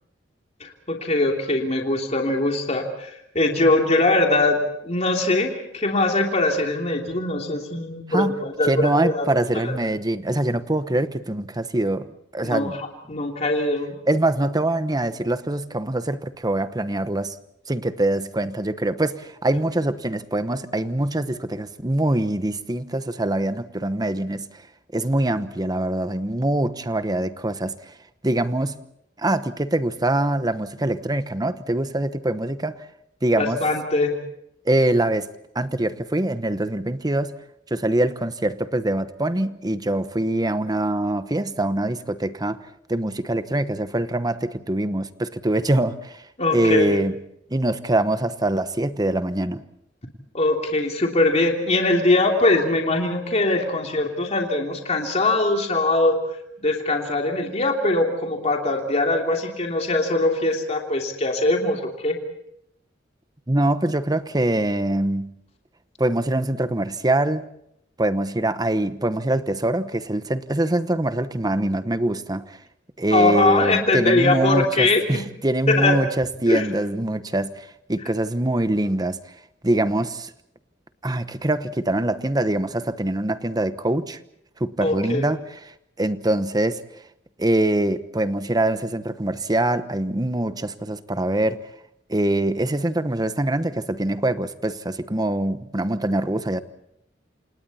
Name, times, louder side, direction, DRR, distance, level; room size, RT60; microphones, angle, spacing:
voice 1, 0.6-9.3 9.6-9.7 12.4-14.0 33.4-34.2 46.4-47.0 50.3-56.2 56.6-62.2 73.1-75.2 75.7-76.0 76.5-76.6 84.8-85.2, left 2 dB, 35° left, 3.1 m, -22 dB
voice 2, 8.1-12.7 14.1-17.3 17.7-24.5 24.9-27.7 28.2-28.8 29.2-32.8 33.2-33.6 34.7-35.3 35.5-37.4 37.7-42.6 42.9-46.2 46.5-47.2 47.5-49.6 63.5-65.3 66.0-67.4 68.0-72.6 73.0-79.2 79.6-80.3 81.0-84.2 84.6-85.6 86.0-86.8 87.4-91.6 92.1-96.6, right 1 dB, 20° right, 1.0 m, -23 dB
28.5 x 28.0 x 4.3 m
head